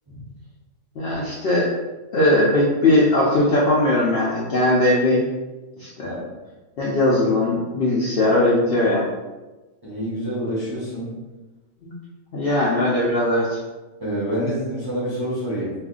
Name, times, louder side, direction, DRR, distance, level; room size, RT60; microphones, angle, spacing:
voice 1, 1.0-1.7 2.1-5.2 5.8-6.1 6.8-9.1 11.9-12.0 12.3-13.6, left 1 dB, 60° left, -6 dB, 0.6 m, -19 dB
voice 2, 9.8-11.1 14.0-15.7, equal, 20° right, -8 dB, 0.6 m, -27 dB
2.5 x 2.4 x 3.6 m, 1.2 s
omnidirectional pair, 1.4 m